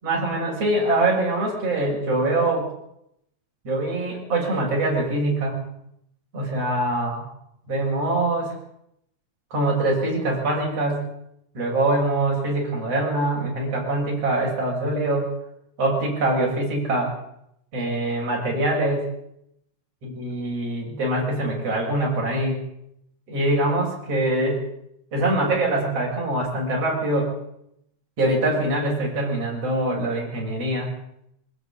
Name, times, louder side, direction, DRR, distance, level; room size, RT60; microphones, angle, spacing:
voice 1, 0.0-2.7 3.6-5.6 6.3-7.2 7.7-8.5 9.5-11.1 11.5-15.3 15.8-17.2 17.7-19.1 20.0-22.6 23.3-24.6 25.1-27.3 28.2-30.9, right 2 dB, 50° right, -2 dB, 7.8 m, -23 dB
25.0 x 13.0 x 9.9 m, 0.78 s
omnidirectional pair, 3.4 m